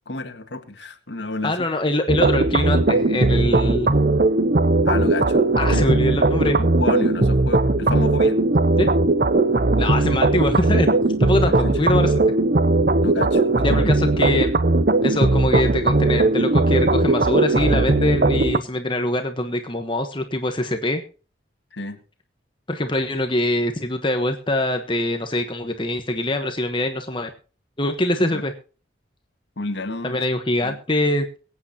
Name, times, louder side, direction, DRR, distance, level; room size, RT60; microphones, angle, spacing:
voice 1, 0.1-1.7 4.9-6.0 6.4-8.4 11.5-11.7 13.0-13.9 21.7-22.0 28.3-28.4 29.6-30.2 30.6-30.8, left 2 dB, 70° left, 6 dB, 1.9 m, -30 dB
voice 2, 1.4-3.9 5.6-6.6 8.8-8.9 9.8-10.9 11.2-12.2 13.6-14.5 15.0-21.0 22.7-27.3 27.8-28.5 30.0-31.4, left 1 dB, 25° left, 6 dB, 1.1 m, -23 dB
sound 1, 2.1-18.6, right 2 dB, 50° right, 0.7 m, -18 dB
23.5 x 8.8 x 2.9 m, 0.38 s
head